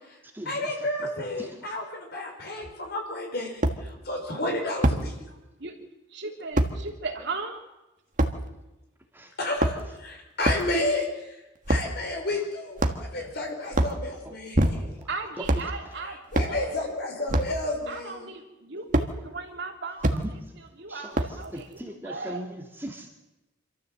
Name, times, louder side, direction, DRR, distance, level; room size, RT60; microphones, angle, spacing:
voice 1, 0.5-3.5 3.8-5.3 9.4-11.4 11.7-14.7 16.3-18.3, left 1 dB, 55° left, 2 dB, 5.3 m, -31 dB
sound 1, 2.6-2.7 3.6-3.8 4.8-5.0 6.6-6.7 8.2-8.4 9.4-10.0 10.4-10.7 11.7-11.9 12.8-13.2 13.7-14.0 14.5-15.0 15.4-15.7 16.3-16.6 17.3-17.6 18.9-19.1 20.0-20.2 21.1-21.5, right 1 dB, 40° right, 1.5 m, -24 dB
voice 2, 6.1-7.6 15.1-16.8 17.9-21.8 22.0-22.4, right 3 dB, 60° right, 2 dB, 3.0 m, -37 dB
voice 3, 14.6-15.1 20.1-20.4 20.9-23.1, right 1 dB, 10° right, 2 dB, 2.0 m, -40 dB
26.0 x 13.5 x 7.7 m, 1.0 s
head